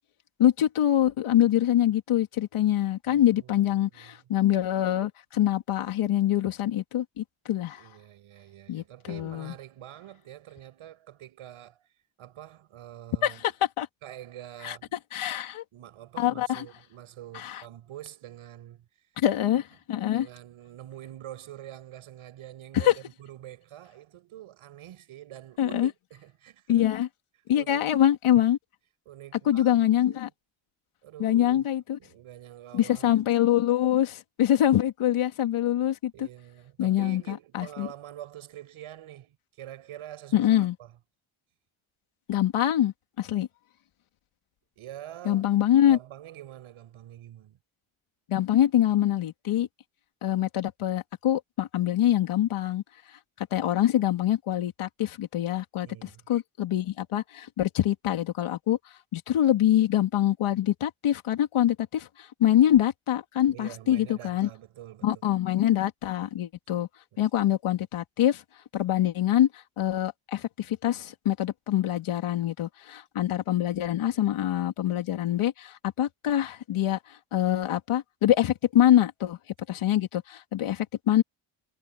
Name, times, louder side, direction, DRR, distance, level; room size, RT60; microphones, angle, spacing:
voice 1, 0.4-7.8 8.7-9.5 13.2-13.5 13.8-13.9 14.6-14.8 15.1-15.6 16.2-16.6 17.3-17.6 19.2-20.3 22.7-22.9 25.6-25.9 26.7-27.1 27.5-28.6 29.4-30.3 31.2-32.0 32.7-36.3 36.8-37.9 40.3-40.7 42.3-43.5 45.2-46.0 48.3-49.7 50.2-52.8 53.4-58.8 59.1-64.5 65.0-66.9 67.2-68.4 68.7-79.4 79.7-81.2, left 12 dB, 85° left, 3.1 m, -25 dB
voice 2, 3.1-4.2 7.8-11.9 12.2-13.5 14.0-14.9 15.7-19.1 20.0-26.9 27.5-27.9 29.1-30.2 31.0-31.7 32.0-33.2 36.1-40.9 44.8-45.5 45.8-47.6 55.8-56.2 63.5-65.2 65.5-65.6, right 12 dB, 90° right, 6.1 m, -46 dB
cardioid pair, 110°, 49 cm